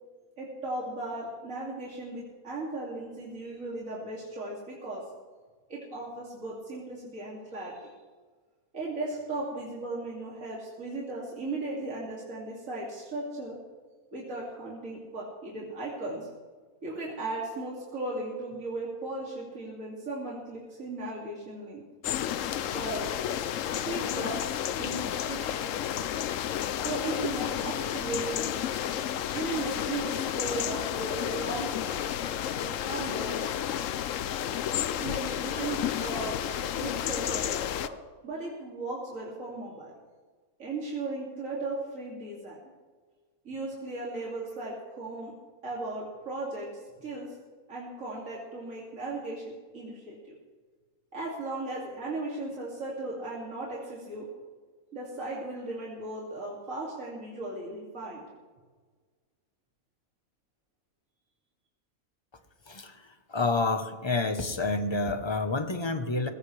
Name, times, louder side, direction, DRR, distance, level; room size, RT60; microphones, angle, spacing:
voice 1, 0.4-5.0 5.7-7.9 8.7-13.6 14.1-16.3 16.8-21.8 22.7-23.1 23.8-24.4 24.8-25.8 26.8-28.5 29.3-32.1 32.5-33.4 35.0-36.4 36.8-38.0 38.2-39.9 40.6-42.6 43.4-45.3 45.6-46.7 47.0-47.3 47.7-50.4 51.1-54.3 54.9-58.2, right 2 dB, 65° right, -5 dB, 3.1 m, -36 dB
sound 1, 22.0-37.9, left 10 dB, 70° left, 1.0 m, -31 dB
voice 2, 62.7-66.3, left 3 dB, 20° left, 8 dB, 0.9 m, -29 dB
20.5 x 17.0 x 3.4 m, 1.4 s
omnidirectional pair, 1.5 m